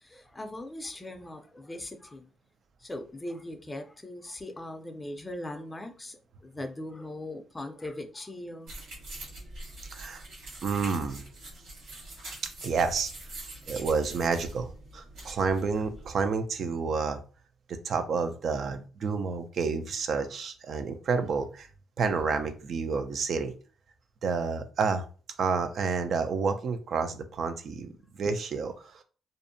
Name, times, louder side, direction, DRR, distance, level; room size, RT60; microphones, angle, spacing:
voice 1, 0.0-2.3 2.8-8.7, left 1 dB, 20° left, 0.4 m, -40 dB
sound 1, 8.7-16.2, right 2 dB, 85° right, 1.2 m, -44 dB
voice 2, 9.9-10.2 10.6-11.2 12.6-13.1 13.7-17.2 17.7-21.7 22.0-23.5 24.2-25.1 25.4-27.9 28.2-29.0, right 5 dB, 60° right, 0.4 m, -29 dB
2.6 x 2.1 x 2.6 m
cardioid pair, 90°, 0 cm